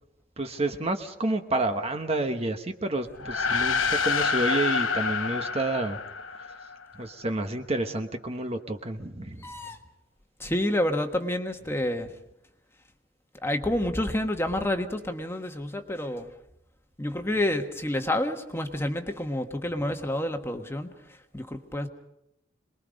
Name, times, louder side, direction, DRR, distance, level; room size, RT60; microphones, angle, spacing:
voice 1, 0.4-6.0 7.0-9.5, right 2 dB, 30° right, 6 dB, 1.1 m, -29 dB
sound 1, 3.1-6.8, left 5 dB, 85° left, 0.9 m, -27 dB
voice 2, 9.4-9.8 10.4-12.1 13.4-16.3 17.0-20.9 21.3-21.9, left 1 dB, 15° left, 5 dB, 1.4 m, -29 dB
27.0 x 21.0 x 5.2 m, 0.83 s
head